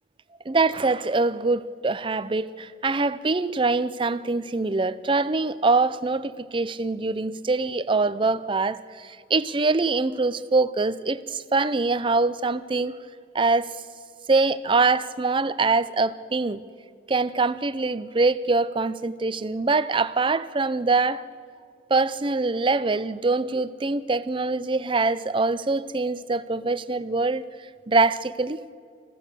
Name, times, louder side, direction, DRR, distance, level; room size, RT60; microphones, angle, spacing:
voice 1, 0.5-13.0 13.3-13.8 14.3-16.6 17.1-21.2 21.9-27.4 27.9-28.6, right 3 dB, 30° right, 0.6 m, -24 dB
29.0 x 15.5 x 6.9 m
head